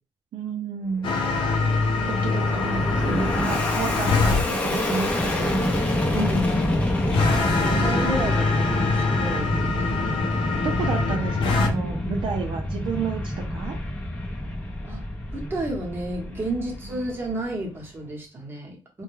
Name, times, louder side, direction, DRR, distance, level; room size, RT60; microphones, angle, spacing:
voice 1, 0.3-1.1 2.1-5.8 7.7-8.1 10.6-13.8 16.5-17.0, right 5 dB, 70° right, 3 dB, 0.4 m, -31 dB
sound 1, 1.0-4.4 7.1-11.7, left 3 dB, 80° left, 0.5 m, -24 dB
Fixed-wing aircraft airplane, 1.0-17.6, left 1 dB, 15° left, 0.6 m, -27 dB
voice 2, 1.0-2.1 6.1-6.6 7.2-9.9 10.7-10.9 14.8-15.0 15.3-19.0, right 1 dB, 25° right, -1 dB, 0.9 m, -32 dB
2.2 x 2.2 x 3.1 m, 0.32 s
cardioid pair, 105°, 9 cm